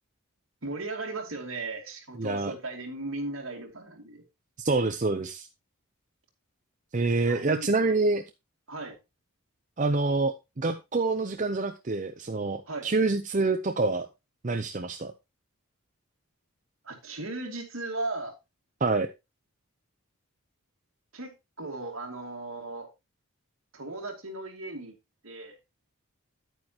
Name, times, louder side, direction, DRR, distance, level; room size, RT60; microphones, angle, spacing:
voice 1, 0.6-4.2 7.2-7.9 8.7-8.9 12.7-12.9 16.8-18.3 21.1-22.9 23.7-24.9 25.2-25.6, right 2 dB, 65° right, 2.5 m, -37 dB
voice 2, 2.2-2.5 4.6-5.5 6.9-8.2 9.8-14.1 14.4-15.1 18.8-19.1, right 3 dB, 35° right, 0.6 m, -26 dB
9.8 x 9.1 x 2.9 m
head